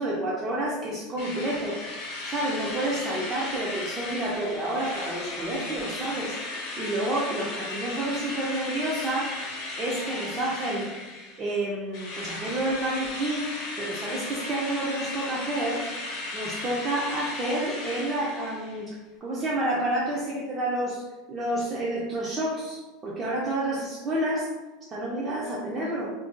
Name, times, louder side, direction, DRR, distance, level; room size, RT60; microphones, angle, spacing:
voice 1, 0.0-1.8 2.2-9.4 9.8-10.9 11.4-13.5 13.8-15.8 16.3-21.0 21.3-24.5 24.9-26.1, right 1 dB, 20° right, -6 dB, 0.4 m, -29 dB
Drill, 1.2-11.6 11.9-18.8, left 2 dB, 55° left, 0.7 m, -36 dB
2.5 x 2.2 x 3.6 m, 1.2 s
supercardioid pair, 165°, 0 cm